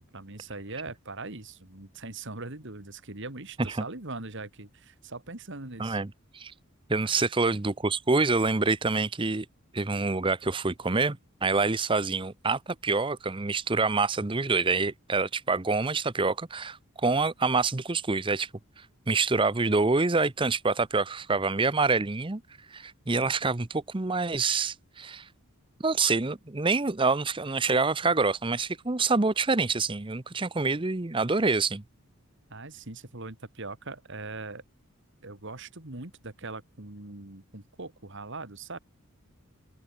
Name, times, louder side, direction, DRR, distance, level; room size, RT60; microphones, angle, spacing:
voice 1, 0.0-6.0 7.0-7.3 32.5-34.6 35.2-38.8, right 3 dB, 55° right, 2.4 m, -41 dB
voice 2, 5.8-6.5 6.9-9.5 9.7-18.5 18.8-22.4 22.7-25.3 25.8-31.8, right 3 dB, 25° right, 0.7 m, -26 dB
open air
head